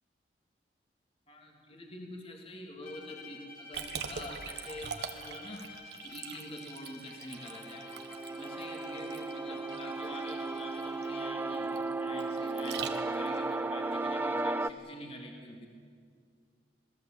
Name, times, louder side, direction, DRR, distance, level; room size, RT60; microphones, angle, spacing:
voice 1, 1.3-5.6 6.0-7.9 8.3-15.7, left 1 dB, 35° left, 1 dB, 3.1 m, -46 dB
Bowed string instrument, 2.8-11.6, left 4 dB, 50° left, 3.3 m, -51 dB
Liquid, 3.7-13.4, right 6 dB, 70° right, 1.6 m, -43 dB
sound 1, 7.4-14.7, right 3 dB, 10° right, 0.5 m, -35 dB
27.0 x 18.5 x 8.1 m, 2.1 s
head